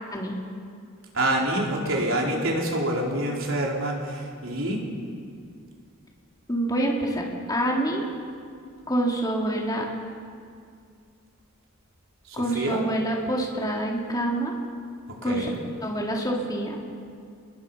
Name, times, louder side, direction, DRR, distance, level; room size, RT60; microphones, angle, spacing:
voice 1, 1.1-4.8 12.3-12.8 15.2-15.5, right 1 dB, 65° right, -1 dB, 4.1 m, -26 dB
voice 2, 6.5-8.0 8.9-9.9 12.3-14.6 15.2-15.5 15.8-16.8, right 1 dB, 20° left, -2 dB, 3.5 m, -26 dB
29.0 x 21.0 x 5.6 m, 2.2 s
head